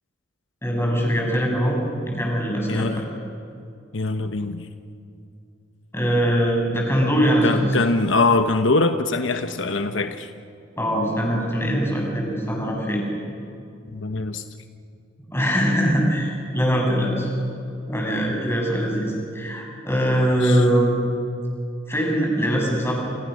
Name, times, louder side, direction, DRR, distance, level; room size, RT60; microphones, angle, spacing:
voice 1, 0.6-1.8 2.0-2.9 5.9-7.6 10.8-13.0 15.3-17.3 17.9-21.0 21.9-22.9, equal, 15° left, -1 dB, 7.1 m, -22 dB
voice 2, 2.7-3.0 3.9-4.7 7.4-10.3 13.9-14.4 20.4-20.6, left 3 dB, 80° left, 8 dB, 1.1 m, -23 dB
29.0 x 28.5 x 6.5 m, 2.5 s
head